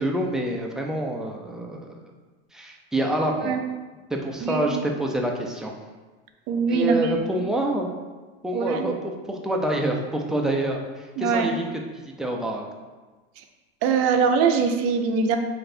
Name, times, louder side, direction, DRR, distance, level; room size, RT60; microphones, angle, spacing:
voice 1, 0.0-1.9 2.5-3.6 4.1-5.7 6.7-7.9 8.4-11.8 12.2-12.6, right 1 dB, ahead, 0 dB, 0.3 m, -27 dB
voice 2, 6.5-7.2 8.5-8.9 11.2-11.6 13.8-15.4, right 5 dB, 50° right, 5 dB, 0.5 m, -22 dB
3.1 x 2.5 x 4.3 m, 1.3 s
supercardioid pair, 110°, 30 cm